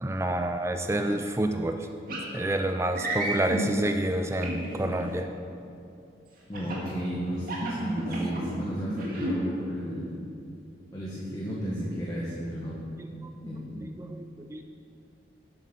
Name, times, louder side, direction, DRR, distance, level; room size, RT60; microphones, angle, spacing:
voice 1, 0.0-1.9 2.3-5.3 7.6-8.3 8.9-9.0 13.2-14.6, right 1 dB, 15° right, 6 dB, 0.4 m, -29 dB
sound 1, 2.1-2.3 2.9-3.6 4.4-5.0 6.5-6.9 7.4-8.5 8.9-9.3, right 1 dB, 50° right, 2.3 m, -32 dB
voice 2, 6.5-10.1 10.9-12.8 13.3-13.7, equal, 20° left, -7 dB, 1.6 m, -33 dB
11.0 x 8.3 x 6.2 m, 2.6 s
head